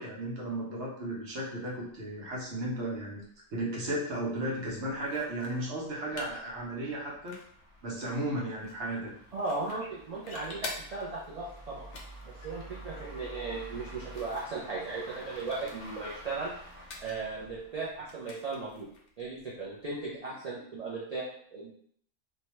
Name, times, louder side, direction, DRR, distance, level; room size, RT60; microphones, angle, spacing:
voice 1, 0.0-3.2 3.5-7.4 7.8-9.1, right 1 dB, 80° right, -4 dB, 1.2 m, -34 dB
sound 1, 3.2-3.3 3.9-18.3, right 1 dB, 20° left, 0.7 m, -50 dB
sound 2, 5.0-20.2, left 3 dB, 65° left, 0.7 m, -50 dB
voice 2, 9.3-11.9 12.2-16.5 17.0-18.9 19.2-21.7, right 3 dB, 45° right, -5 dB, 0.5 m, -37 dB
2.7 x 2.2 x 3.0 m, 0.64 s
omnidirectional pair, 1.2 m